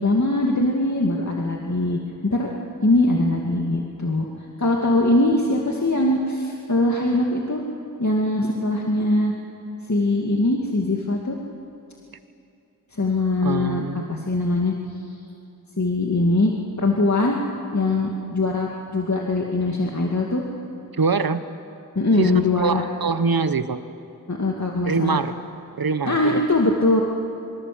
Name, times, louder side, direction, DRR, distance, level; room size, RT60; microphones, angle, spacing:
voice 1, 0.0-2.5 2.8-4.3 4.6-7.6 8.0-9.3 9.9-11.4 12.9-14.7 15.8-16.5 16.8-17.4 17.7-20.4 22.0-22.8 24.3-25.2 26.1-27.0, left 2 dB, 55° left, -1 dB, 2.3 m, -21 dB
voice 2, 13.4-14.2 21.0-21.4 22.2-23.8 24.8-25.3 25.8-26.4, right 5 dB, 85° right, 12 dB, 1.1 m, -24 dB
27.5 x 24.0 x 7.8 m, 2.7 s
wide cardioid pair, 45°, 35 cm